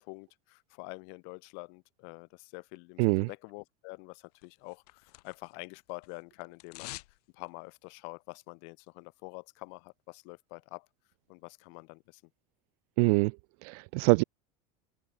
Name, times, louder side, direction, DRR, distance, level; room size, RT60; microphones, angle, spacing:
voice 1, 0.0-10.9 11.3-12.2, left 40 dB or more, 70° left, 3.5 m, -47 dB
sound 1, 4.4-5.6 5.9-7.2 7.5-7.6, left 21 dB, 85° left, 2.5 m, -47 dB
voice 2, 13.0-13.3 13.6-14.2, right 31 dB, 70° right, 0.6 m, -24 dB
supercardioid pair, 125°, 20 cm